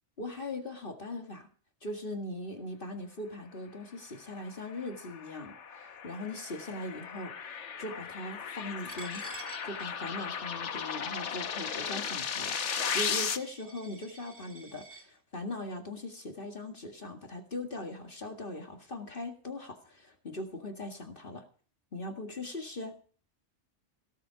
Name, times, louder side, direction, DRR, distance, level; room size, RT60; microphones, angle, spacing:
voice 1, 0.2-1.5 1.8-9.3 9.6-12.6 12.9-21.5 21.9-23.0, left 2 dB, 50° left, 3 dB, 2.2 m, -40 dB
sound 1, 4.5-13.4, left 7 dB, 80° left, 1.3 m, -36 dB
Coin (dropping), 8.9-15.1, right 2 dB, 45° right, 2.4 m, -51 dB
17.5 x 7.7 x 5.7 m, 0.41 s
omnidirectional pair, 1.2 m